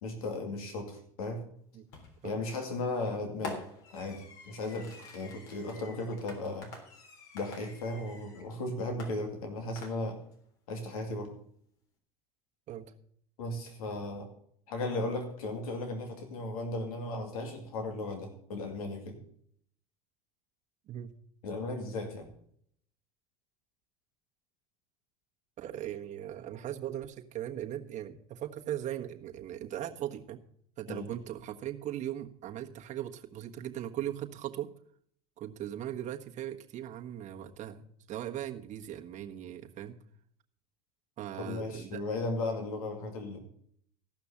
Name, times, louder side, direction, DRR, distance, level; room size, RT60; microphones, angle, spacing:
voice 1, 0.0-1.4 2.2-3.6 3.9-6.7 7.3-10.2 10.7-11.3 13.4-14.3 14.7-19.2 21.4-22.3 30.9-31.1 41.4-43.4, left 2 dB, 90° left, 5 dB, 2.5 m, -36 dB
Fireworks, 1.9-2.3 3.4-8.5 9.0-10.3, left 3 dB, 70° left, 3.6 m, -47 dB
voice 2, 25.6-30.4 30.8-34.7 35.4-39.9 41.2-42.0, right 11 dB, 40° right, 3 dB, 1.4 m, -39 dB
14.5 x 6.0 x 7.2 m, 0.65 s
supercardioid pair, 100°, 18 cm